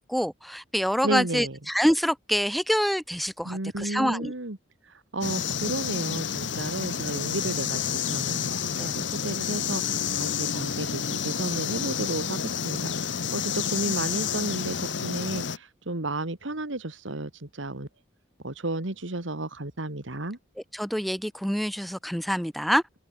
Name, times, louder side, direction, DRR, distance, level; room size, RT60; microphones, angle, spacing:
voice 1, 0.0-4.3 8.8-9.0 20.7-22.8, equal, ahead, 0.5 m, -26 dB
voice 2, 1.0-1.6 3.4-4.6 5.1-12.9 13.3-17.9 18.4-20.4, right 2 dB, 85° right, 2.1 m, -32 dB
sound 1, 5.2-15.6, left 7 dB, 75° left, 1.2 m, -29 dB
open air
head